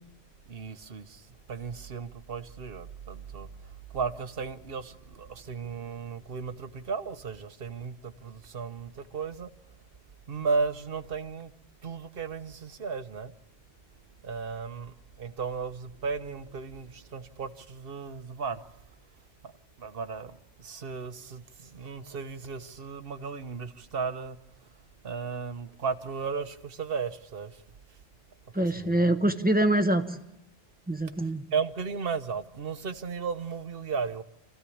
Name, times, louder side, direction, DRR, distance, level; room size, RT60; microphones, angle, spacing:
voice 1, 0.5-3.5 3.9-9.5 10.3-11.5 11.8-13.3 14.2-18.6 19.4-19.5 19.8-20.3 20.6-24.4 25.0-27.6 28.5-29.2 31.2-34.2, right 5 dB, 65° right, 1.2 m, -35 dB
voice 2, 28.5-30.2 30.9-31.4, right 1 dB, 10° right, 1.2 m, -25 dB
26.5 x 15.5 x 8.5 m
omnidirectional pair, 1.1 m